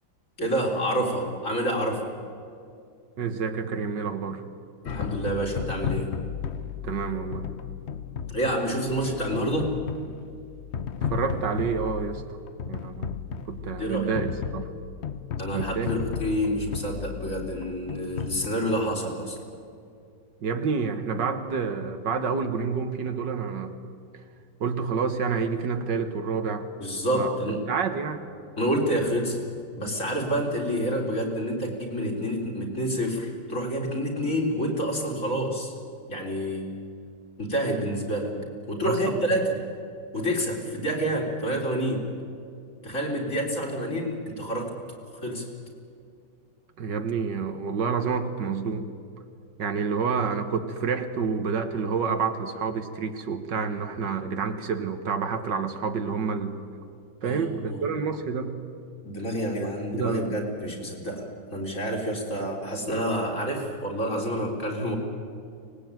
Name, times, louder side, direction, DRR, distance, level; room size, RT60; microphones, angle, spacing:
voice 1, 0.4-2.1 4.8-6.1 8.3-9.8 13.8-14.1 15.4-19.4 26.8-27.6 28.6-29.4 29.8-35.7 36.1-36.7 37.4-38.4 38.7-39.5 40.1-42.1 42.8-44.8 45.1-45.5 57.2-57.9 59.0-65.0, equal, 40° left, 1 dB, 4.3 m, -28 dB
voice 2, 3.2-4.5 6.8-7.5 11.0-12.2 12.7-13.2 13.5-14.7 15.5-15.9 20.4-23.8 24.6-26.7 27.1-27.4 27.7-28.3 29.8-29.9 38.8-39.2 46.8-48.9 49.6-56.6 57.2-58.5 59.6-60.3, right 5 dB, 65° right, 8 dB, 1.9 m, -28 dB
sound 1, 4.9-18.5, left 7 dB, 55° left, 0.7 m, -34 dB
24.5 x 19.5 x 9.1 m, 2.4 s
omnidirectional pair, 2.1 m